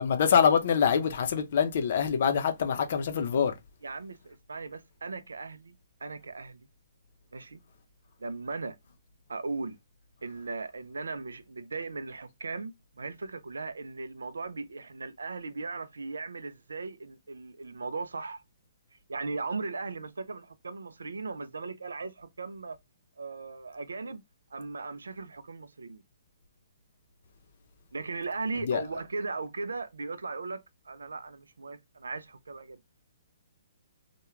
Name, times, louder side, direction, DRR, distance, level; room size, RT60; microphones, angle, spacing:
voice 1, 0.0-3.6 28.6-28.8, left 7 dB, 55° left, 0.5 m, -25 dB
voice 2, 3.8-6.7 7.3-7.6 8.2-8.8 9.3-9.8 10.2-18.4 19.1-22.8 23.2-24.2 24.5-26.0 27.9-32.8, right 3 dB, 85° right, 0.3 m, -38 dB
2.2 x 2.1 x 3.0 m
hypercardioid pair, 135°, 0 cm